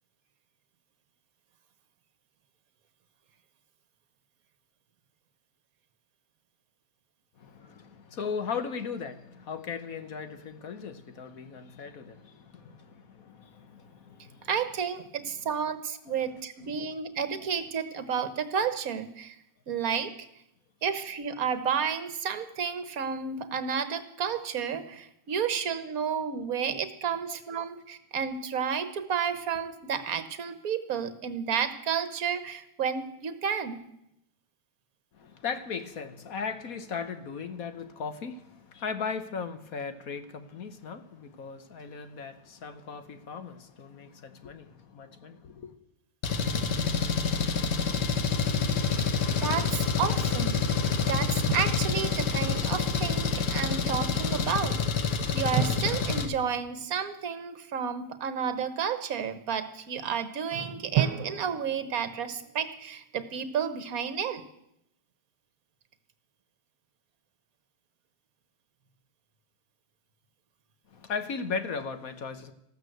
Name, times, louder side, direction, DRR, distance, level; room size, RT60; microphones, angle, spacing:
voice 1, 7.4-14.5 16.1-16.2 16.6-16.9 35.1-45.7 70.9-72.5, left 5 dB, 60° left, 1.4 m, -37 dB
voice 2, 14.5-19.4 19.7-20.1 20.8-33.9 48.9-49.0 49.3-50.6 51.1-54.8 55.3-64.4, right 7 dB, 55° right, 1.6 m, -31 dB
Engine, 46.2-56.3, left 5 dB, 75° left, 2.0 m, -27 dB
Drum, 51.5-52.6 55.6-57.4 60.9-62.9, right 11 dB, 90° right, 1.5 m, -33 dB
14.5 x 13.0 x 7.9 m
omnidirectional pair, 1.9 m